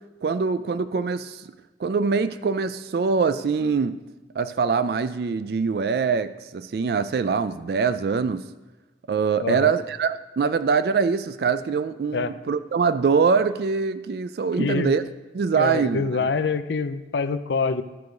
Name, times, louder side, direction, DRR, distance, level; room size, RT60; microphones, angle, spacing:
voice 1, 0.2-1.5 1.8-4.0 4.4-8.5 9.1-15.0 15.3-16.3, right 5 dB, 60° right, 12 dB, 0.3 m, -23 dB
voice 2, 9.4-9.7 12.1-12.3 14.6-14.9 15.6-17.8, left 4 dB, 85° left, 12 dB, 0.5 m, -25 dB
13.0 x 4.7 x 5.1 m, 1.1 s
head